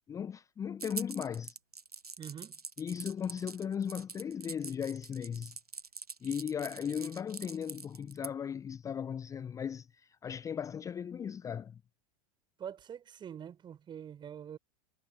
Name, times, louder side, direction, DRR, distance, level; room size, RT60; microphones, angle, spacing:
voice 1, 0.1-1.6 2.8-5.5 6.2-11.8, left 8 dB, 15° left, 0.6 m, -37 dB
sound 1, 0.8-8.3, right 4 dB, 85° right, 1.3 m, -44 dB
voice 2, 2.2-2.6 12.6-14.6, right 8 dB, 25° right, 6.4 m, -45 dB
figure-of-eight pair, 90°, 19 cm